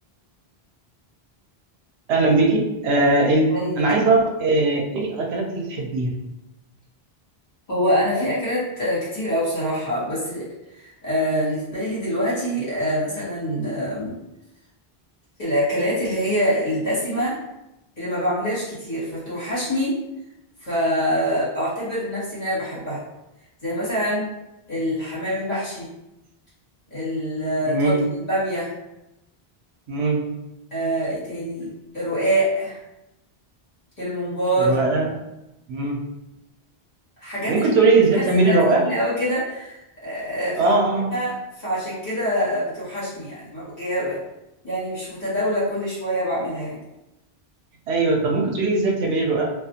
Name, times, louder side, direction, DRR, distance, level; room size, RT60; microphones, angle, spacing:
voice 1, 2.1-6.1 27.7-28.1 29.9-30.3 34.6-35.1 35.7-36.0 37.5-38.9 40.6-41.1 47.9-49.5, right 3 dB, 85° right, 1 dB, 0.8 m, -20 dB
voice 2, 7.7-10.5 10.7-14.2 15.4-17.4 18.0-20.0 20.6-23.0 23.6-24.3 24.7-25.9 26.9-27.9 28.3-28.7 30.7-32.8 34.0-34.7 37.2-37.7 38.1-40.8 41.1-44.2 44.6-46.8, equal, 45° left, -9 dB, 1.3 m, -25 dB
2.4 x 2.3 x 2.6 m, 0.92 s
omnidirectional pair, 1.0 m